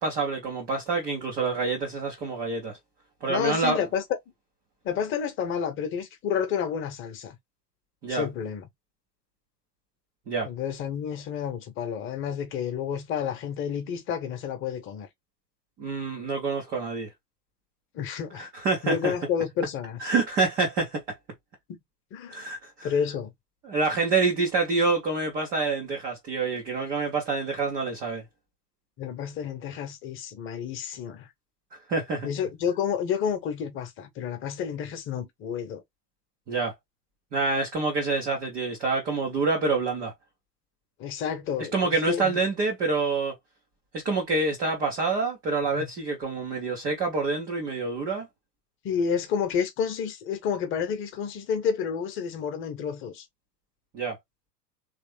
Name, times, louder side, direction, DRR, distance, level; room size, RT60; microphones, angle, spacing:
voice 1, 0.0-2.8 3.2-3.8 8.0-8.3 10.3-10.5 15.8-17.1 18.4-19.1 20.0-21.0 22.3-22.9 23.6-28.2 31.7-32.3 36.5-36.7 37.3-40.1 41.7-43.3 44.0-48.3 53.9-54.2, right 3 dB, 10° right, 0.3 m, -27 dB
voice 2, 3.3-4.0 4.8-7.4 8.1-8.7 10.4-15.1 17.9-18.5 18.8-20.1 22.1-22.4 22.8-23.3 29.0-31.3 32.2-35.8 41.0-42.4 45.7-45.9 48.8-53.2, left 7 dB, 25° left, 0.9 m, -30 dB
3.3 x 3.2 x 3.2 m
figure-of-eight pair, 90°, 50 cm